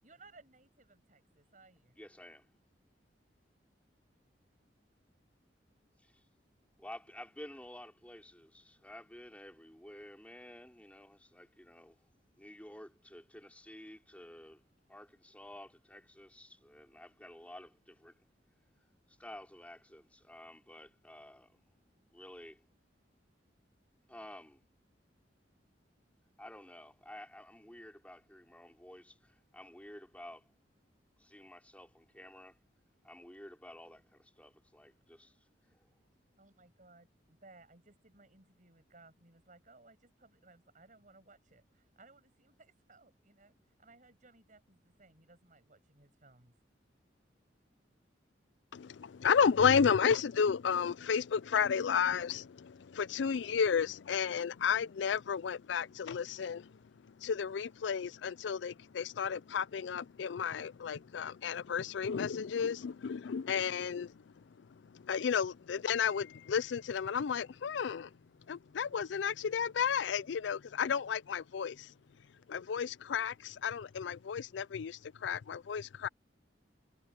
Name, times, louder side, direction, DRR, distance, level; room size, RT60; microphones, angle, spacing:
voice 1, 0.0-2.0 36.4-46.5, right 3 dB, 45° right, 6.6 m, -61 dB
voice 2, 2.0-2.5 6.0-6.2 6.8-12.0 12.4-14.6 14.9-18.2 19.1-21.6 22.1-22.6 24.1-24.6 26.4-30.5 31.2-32.6 33.0-35.4 35.7-35.9, left 1 dB, 10° left, 4.6 m, -52 dB
voice 3, 48.7-68.1 68.5-71.9 72.5-76.1, left 7 dB, 75° left, 0.4 m, -32 dB
head